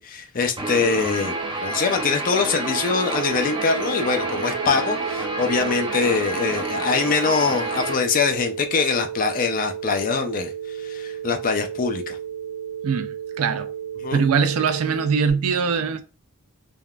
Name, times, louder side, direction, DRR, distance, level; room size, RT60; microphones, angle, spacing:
voice 1, 0.0-1.3 1.6-10.5 10.8-12.2 14.0-14.3, left 5 dB, 40° left, 0.4 m, -23 dB
Guitar, 0.6-7.9, right 2 dB, 20° right, 0.5 m, -29 dB
Telephone, 3.1-15.3, right 9 dB, 50° right, 0.8 m, -33 dB
voice 2, 12.8-13.7 14.1-16.0, right 6 dB, 85° right, 0.4 m, -22 dB
3.5 x 2.4 x 2.2 m
head